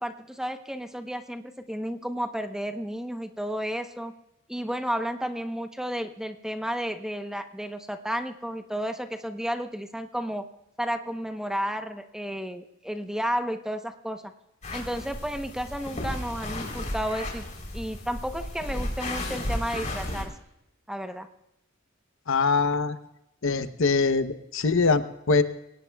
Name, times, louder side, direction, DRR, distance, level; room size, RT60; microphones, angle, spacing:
voice 1, 0.0-4.1 4.5-10.4 10.8-14.3 14.7-17.5 17.7-20.3 20.9-21.3, equal, 5° right, 6 dB, 0.9 m, -32 dB
sound 1, 14.6-20.2, left 1 dB, 35° left, 3.6 m, -34 dB
voice 2, 22.3-23.0 23.4-25.4, left 4 dB, 65° left, 10 dB, 0.9 m, -23 dB
23.0 x 18.5 x 2.3 m, 0.86 s
head